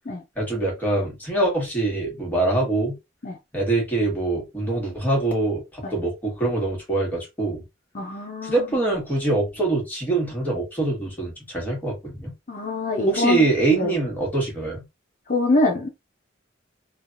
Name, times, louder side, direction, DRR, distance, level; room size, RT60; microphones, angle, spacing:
voice 1, 0.4-3.0 3.5-7.6 8.4-12.3 13.1-14.8, right 2 dB, 10° left, 1.3 m, -24 dB
voice 2, 7.9-8.7 12.5-13.5 13.8-13.9 15.3-15.9, left 2 dB, 45° left, 0.5 m, -24 dB
3.2 x 2.2 x 2.5 m
head